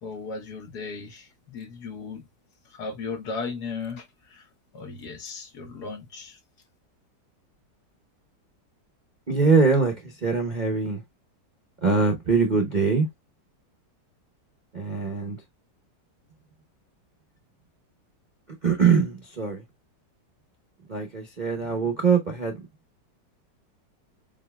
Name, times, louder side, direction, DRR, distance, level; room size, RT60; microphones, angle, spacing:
voice 1, 0.0-2.2 2.7-4.5 4.7-6.4, left 4 dB, 65° left, 1.7 m, -36 dB
voice 2, 9.3-11.0 11.8-13.1 14.7-15.4 18.6-19.6 20.9-22.6, right 5 dB, 35° right, 0.8 m, -23 dB
7.4 x 2.9 x 2.3 m
omnidirectional pair, 1.9 m